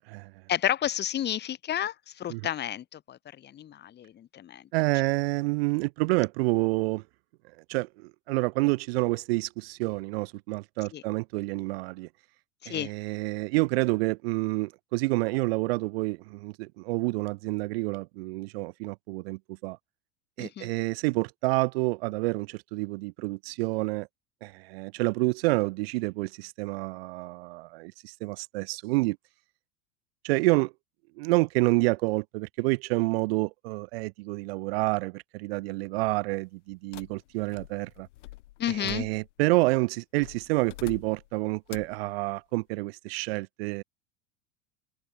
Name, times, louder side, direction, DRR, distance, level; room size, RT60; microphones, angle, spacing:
voice 1, 0.5-4.6 10.9-11.0 12.6-12.9 20.4-20.7 38.6-39.1, left 11 dB, 25° left, 1.1 m, -31 dB
voice 2, 4.7-7.0 7.7-12.1 12.7-19.8 20.4-24.1 24.4-29.2 30.2-30.7 31.2-38.1 38.7-43.8, right 23 dB, 50° right, 0.7 m, -28 dB
sound 1, 36.9-39.5 40.2-41.3 41.7-42.0, left 17 dB, 60° left, 1.3 m, -46 dB
open air
figure-of-eight pair, 80°, 41 cm